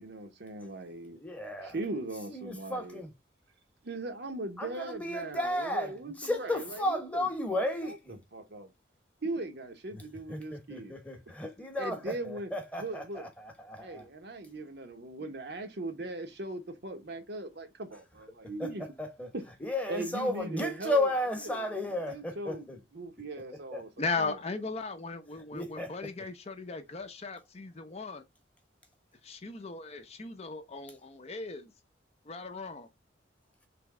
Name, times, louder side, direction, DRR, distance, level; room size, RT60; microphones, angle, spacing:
voice 1, 0.0-1.2 1.6-3.0 3.8-8.0 8.3-8.7 9.2-11.0 11.8-12.5 12.8-13.3 13.8-18.8 19.3-19.4 19.9-21.1 21.4-24.4, right 2 dB, 60° right, 0.9 m, -39 dB
voice 2, 1.1-1.7 2.3-3.1 4.6-8.2 9.9-10.0 10.3-14.1 18.6-18.7 19.0-19.3 19.6-22.8 23.7-23.8 25.5-25.9, left 1 dB, 10° left, 1.0 m, -33 dB
voice 3, 24.0-28.2 29.2-31.7 32.3-32.9, left 3 dB, 35° left, 0.6 m, -37 dB
3.4 x 3.1 x 4.6 m
head